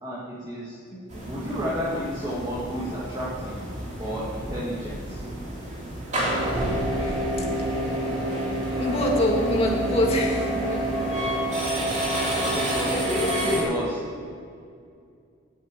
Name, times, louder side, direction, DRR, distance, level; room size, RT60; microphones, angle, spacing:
voice 1, 0.0-0.8 1.3-3.6 4.0-5.2 12.2-14.2, equal, 20° right, -8 dB, 1.9 m, -31 dB
voice 2, 0.9-1.3 6.9-7.5 8.8-10.9 12.1-12.4 12.8-13.7, left 1 dB, 30° left, -1 dB, 1.9 m, -27 dB
sound 1, 1.1-13.6, right 1 dB, 35° right, 2.5 m, -28 dB
9.0 x 7.7 x 8.9 m, 2.3 s
head